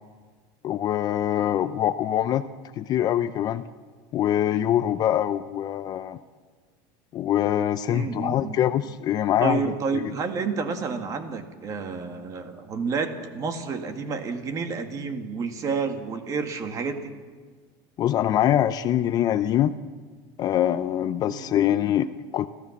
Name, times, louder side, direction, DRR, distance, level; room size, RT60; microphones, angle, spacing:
voice 1, 0.6-2.4 2.8-3.6 4.1-6.2 7.1-10.1 18.0-19.7 20.4-22.5, left 11 dB, 35° left, 12 dB, 0.6 m, -24 dB
voice 2, 7.9-8.5 9.4-17.1 21.3-21.6, right 5 dB, 30° right, 7 dB, 2.0 m, -30 dB
29.5 x 15.0 x 7.2 m, 1.5 s
supercardioid pair, 150°, 11 cm